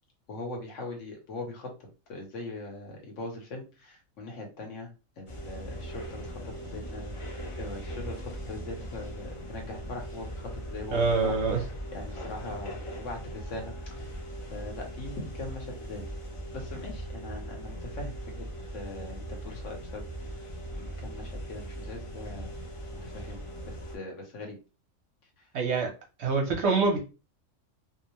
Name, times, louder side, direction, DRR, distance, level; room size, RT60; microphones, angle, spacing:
voice 1, 0.3-1.7 2.1-11.4 11.9-14.2 14.5-16.1 16.5-18.4 18.7-22.5 23.0-23.4 23.6-24.6 25.4-25.5, left 2 dB, 65° left, 1.1 m, -41 dB
sound 1, 5.3-24.0, equal, 45° left, 0.4 m, -39 dB
voice 2, 10.9-11.6 25.5-25.9 26.2-27.0, right 4 dB, 60° right, 0.8 m, -25 dB
2.7 x 2.0 x 2.8 m
omnidirectional pair, 1.4 m